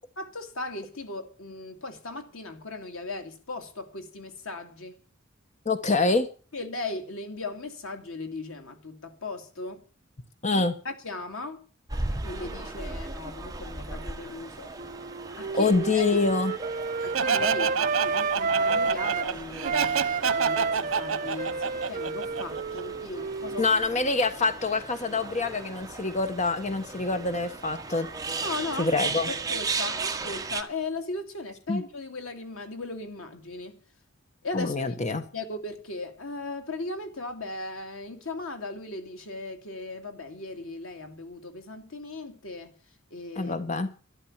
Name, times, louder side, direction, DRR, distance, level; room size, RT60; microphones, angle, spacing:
voice 1, 0.2-5.0 6.5-9.8 10.5-11.6 12.2-14.7 15.4-16.2 17.0-23.7 28.4-33.8 34.4-34.8 35.1-42.7 43.1-43.6, left 3 dB, 90° left, 2.7 m, -37 dB
voice 2, 5.6-6.3 10.4-10.7 15.5-16.5 23.6-28.1 28.8-29.3 31.7-31.8 34.5-35.2 43.4-43.9, left 3 dB, 35° left, 1.2 m, -25 dB
sound 1, 11.9-30.6, right 3 dB, 20° right, 1.3 m, -37 dB
Wind instrument woodwind instrument, 14.8-19.3 19.6-24.1, right 4 dB, 40° right, 0.7 m, -30 dB
Laughter, 17.1-22.8, right 6 dB, 85° right, 0.9 m, -28 dB
12.5 x 12.0 x 7.4 m
head